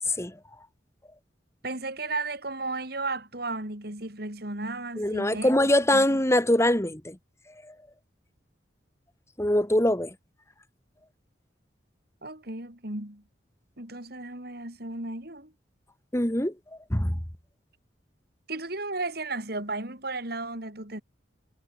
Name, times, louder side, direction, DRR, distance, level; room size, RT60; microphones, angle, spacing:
voice 1, 0.1-0.4 5.0-7.2 7.6-7.7 9.4-10.1 16.1-16.5 16.9-17.2, left 1 dB, 15° left, 2.9 m, -23 dB
voice 2, 1.6-5.5 5.9-6.1 12.2-13.2 13.8-15.5 18.5-21.0, right 2 dB, 55° right, 5.6 m, -34 dB
head